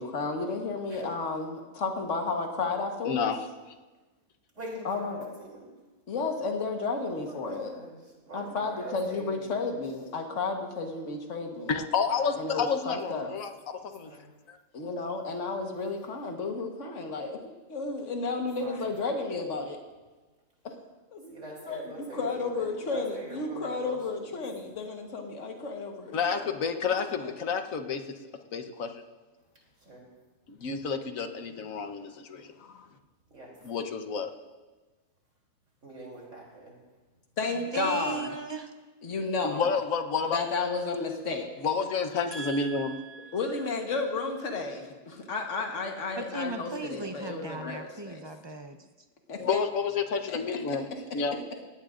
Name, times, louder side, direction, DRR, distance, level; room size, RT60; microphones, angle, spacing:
voice 1, 0.0-3.3 4.9-5.3 6.1-7.7 8.3-11.7 12.4-13.3 14.7-17.4 17.7-19.8 20.6-20.7 21.1-26.5 27.2-27.3 37.4-38.3 39.0-39.7 40.3-41.5 43.3-48.3 49.3-49.6 50.3-50.4 50.7-50.8, left 3 dB, 65° left, 3 dB, 1.7 m, -32 dB
voice 2, 3.0-3.5 11.7-13.5 13.8-14.1 14.5-14.6 26.1-28.0 28.5-28.9 30.5-32.9 33.6-34.3 39.4-40.4 41.6-42.9 49.4-50.9 51.1-51.4, left 5 dB, 80° left, 7 dB, 1.4 m, -30 dB
voice 3, 4.5-5.7 7.1-8.0 8.2-9.7 12.1-12.3 12.7-13.3 13.8-14.3 18.3-18.8 21.3-24.0 29.8-30.0 33.3-33.6 35.8-36.8, right 1 dB, 65° right, -2 dB, 3.7 m, -44 dB
voice 4, 37.7-38.7 42.3-43.4 46.2-48.7, right 3 dB, 25° right, 6 dB, 0.7 m, -37 dB
18.0 x 17.0 x 2.5 m, 1.2 s
omnidirectional pair, 1.4 m